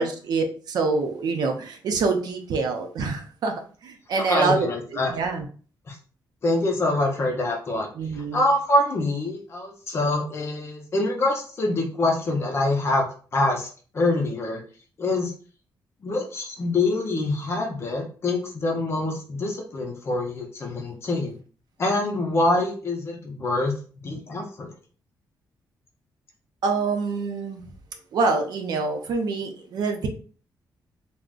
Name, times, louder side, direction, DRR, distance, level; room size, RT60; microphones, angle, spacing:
voice 1, 0.0-3.5 3.8-4.7 5.1-5.5 8.0-8.4 26.6-27.6 28.1-30.1, right 4 dB, 65° right, 4 dB, 0.5 m, -25 dB
voice 2, 4.3-5.1 5.9-6.0 6.4-13.7 13.9-14.6 15.0-15.3 16.0-21.4 21.8-23.8 24.0-24.7, left 2 dB, 35° left, 1 dB, 0.6 m, -25 dB
3.7 x 2.0 x 2.4 m, 0.41 s
wide cardioid pair, 175°, 8 cm